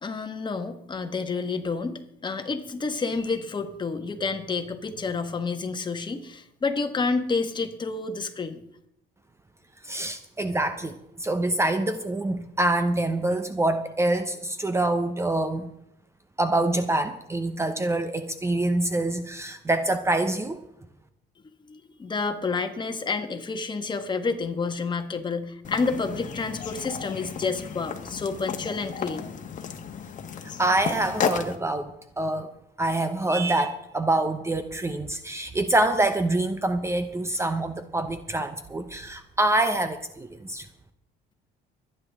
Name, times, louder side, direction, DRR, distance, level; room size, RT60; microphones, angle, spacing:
voice 1, 0.0-8.6 21.6-29.3, left 4 dB, 25° left, 6 dB, 1.5 m, -29 dB
voice 2, 9.8-15.7 16.4-20.6 30.6-32.5 32.8-40.7, right 2 dB, 15° right, 9 dB, 0.8 m, -26 dB
sound 1, 25.6-31.6, left 7 dB, 50° left, 1.4 m, -33 dB
24.5 x 10.0 x 3.7 m, 0.78 s
cardioid pair, 110°, 17 cm